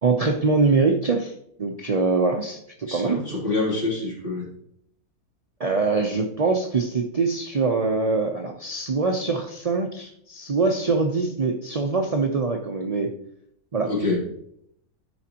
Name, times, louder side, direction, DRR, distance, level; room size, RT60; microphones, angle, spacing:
voice 1, 0.0-1.3 1.6-3.2 5.6-13.2 13.7-13.9, right 4 dB, 60° right, 2 dB, 0.3 m, -23 dB
voice 2, 2.9-4.4 13.8-14.2, left 3 dB, 35° left, -5 dB, 3.1 m, -26 dB
12.0 x 5.0 x 2.9 m, 0.71 s
omnidirectional pair, 1.6 m